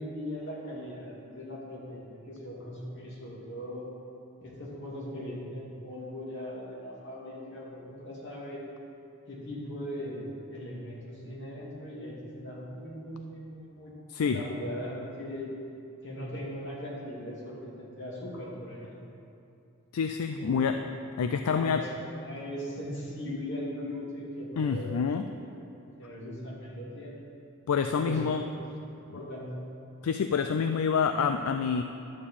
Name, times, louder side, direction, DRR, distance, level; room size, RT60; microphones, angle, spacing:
voice 1, 0.0-3.9 4.4-8.6 9.3-13.9 14.2-15.5 16.0-19.1 20.4-20.7 21.5-21.9 22.2-25.1 25.4-25.5 26.0-27.2 27.9-28.6 29.1-29.5, equal, 55° left, -5 dB, 2.3 m, -39 dB
voice 2, 19.9-20.8 21.2-21.8 24.6-25.2 27.7-28.5 30.0-31.8, left 6 dB, 75° left, 7 dB, 0.4 m, -27 dB
11.0 x 4.3 x 7.4 m, 2.6 s
head